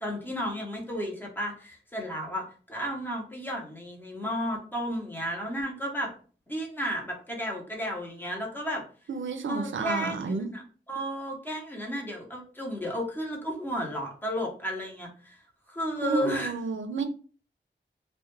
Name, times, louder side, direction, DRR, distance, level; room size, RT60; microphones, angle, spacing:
voice 1, 0.0-6.1 6.5-8.8 9.5-10.6 10.9-15.4 15.7-16.6, equal, 10° left, -1 dB, 0.7 m, -33 dB
voice 2, 9.1-10.5 16.0-17.0, right 4 dB, 85° right, 6 dB, 0.4 m, -30 dB
2.3 x 2.1 x 2.9 m, 0.41 s
wide cardioid pair, 100°, 19 cm